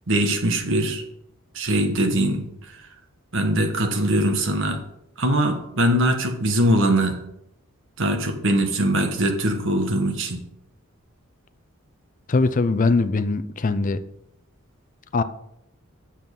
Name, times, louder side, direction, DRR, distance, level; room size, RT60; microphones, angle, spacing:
voice 1, 0.1-1.0 1.5-2.4 3.3-4.8 5.2-7.2 8.0-10.4, right 1 dB, 65° right, 5 dB, 1.4 m, -21 dB
voice 2, 12.3-14.0 15.1-15.2, left 3 dB, 40° left, 12 dB, 0.5 m, -21 dB
8.5 x 7.3 x 5.4 m, 0.80 s
head